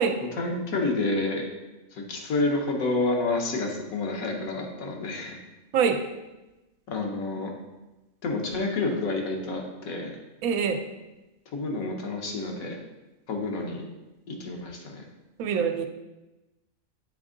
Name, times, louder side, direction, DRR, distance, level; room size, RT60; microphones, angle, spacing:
voice 1, 0.3-1.4 1.9-5.4 6.9-7.5 8.2-10.1 11.5-12.8 13.3-13.8 14.3-15.0, left 2 dB, 80° left, 1 dB, 1.4 m, -29 dB
voice 2, 10.4-10.8 15.4-15.9, right 6 dB, 85° right, 7 dB, 1.0 m, -24 dB
7.4 x 3.5 x 3.8 m, 1.0 s
omnidirectional pair, 1.5 m